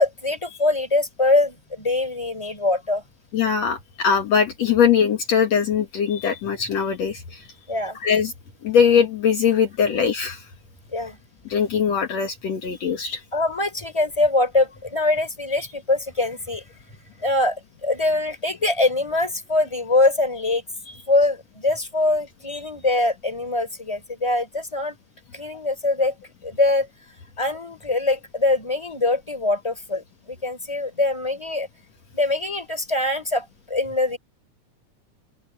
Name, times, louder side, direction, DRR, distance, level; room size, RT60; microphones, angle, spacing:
voice 1, 0.0-3.0 7.7-8.0 10.9-11.2 13.3-16.6 17.2-20.6 21.1-25.0 25.3-26.1 26.4-26.9 27.4-31.7 32.1-34.2, left 2 dB, 10° left, 4.3 m, -23 dB
voice 2, 3.3-7.5 8.0-8.3 8.6-10.4 11.5-13.2 22.5-22.6, left 7 dB, 60° left, 2.8 m, -21 dB
open air
omnidirectional pair, 3.4 m